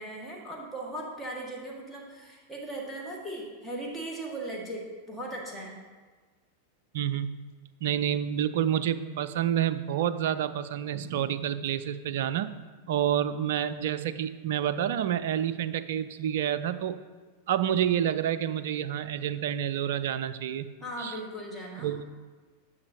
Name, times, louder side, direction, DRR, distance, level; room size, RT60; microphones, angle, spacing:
voice 1, 0.0-5.8 20.8-22.0, right 1 dB, 5° left, -3 dB, 1.8 m, -38 dB
voice 2, 6.9-7.3 7.8-12.6 12.9-17.0 17.5-20.7 21.0-21.1 21.8-22.0, right 10 dB, 55° right, 13 dB, 0.4 m, -28 dB
9.5 x 7.1 x 2.8 m, 1.4 s
figure-of-eight pair, 90°, 0 cm